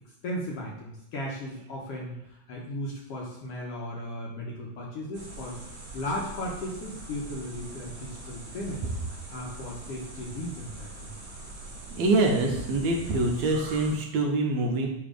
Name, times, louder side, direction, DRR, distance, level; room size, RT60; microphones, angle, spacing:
voice 1, 0.2-5.6 5.9-11.1, left 1 dB, 65° left, -2 dB, 1.7 m, -36 dB
sound 1, 5.1-13.9, right 2 dB, 45° right, 1.3 m, -43 dB
voice 2, 11.9-14.9, right 2 dB, 70° right, 0 dB, 2.0 m, -25 dB
7.7 x 3.1 x 5.1 m, 0.86 s
omnidirectional pair, 3.5 m